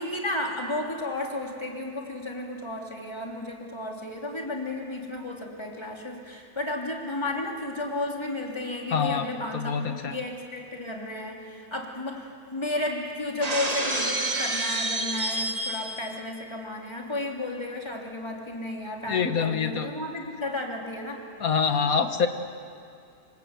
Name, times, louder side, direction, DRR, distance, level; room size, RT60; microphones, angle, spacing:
voice 1, 0.0-21.3, left 2 dB, 15° left, 0 dB, 3.2 m, -33 dB
voice 2, 8.9-9.3 9.5-10.2 19.1-19.9 21.4-22.3, left 6 dB, 65° left, 8 dB, 1.9 m, -25 dB
Shatter, 13.4-16.2, right 2 dB, 25° right, 1.7 m, -28 dB
27.0 x 25.0 x 8.1 m, 2.4 s
omnidirectional pair, 1.7 m